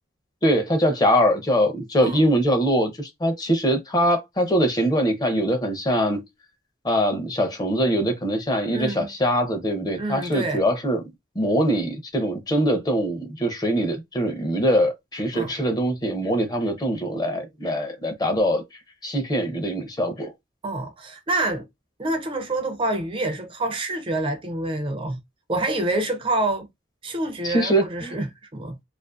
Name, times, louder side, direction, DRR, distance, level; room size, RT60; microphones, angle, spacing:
voice 1, 0.4-6.2 6.8-11.0 11.4-18.6 19.0-20.3 27.4-28.1, equal, 20° left, 0.5 m, -23 dB
voice 2, 8.7-9.1 9.9-10.6 15.3-15.5 20.6-21.7 22.0-25.2 25.5-26.7 27.0-28.8, right 2 dB, 30° right, 0.4 m, -27 dB
2.4 x 2.4 x 2.3 m
head